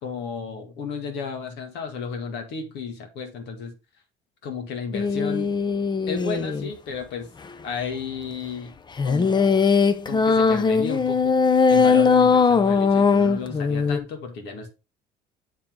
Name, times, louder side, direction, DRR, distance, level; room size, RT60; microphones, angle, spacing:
voice 1, 0.0-3.7 4.4-5.5 6.1-7.3 7.6-8.8 9.0-9.8 10.1-11.4 11.7-14.7, left 5 dB, 75° left, 1.9 m, -33 dB
sound 1, 4.9-6.7 9.0-14.0, left 5 dB, 25° left, 0.6 m, -20 dB
7.4 x 3.7 x 4.6 m
supercardioid pair, 90°, 18 cm